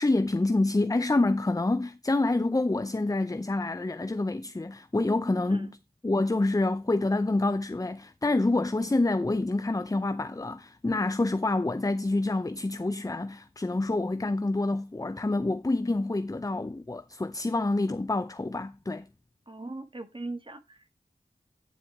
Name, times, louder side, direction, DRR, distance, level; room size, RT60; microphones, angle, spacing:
voice 1, 0.0-5.7 6.0-19.1, left 2 dB, 20° left, 0.6 m, -27 dB
voice 2, 19.5-20.9, right 2 dB, 35° right, 1.6 m, -40 dB
9.9 x 4.5 x 4.8 m
wide cardioid pair, 45°, 16 cm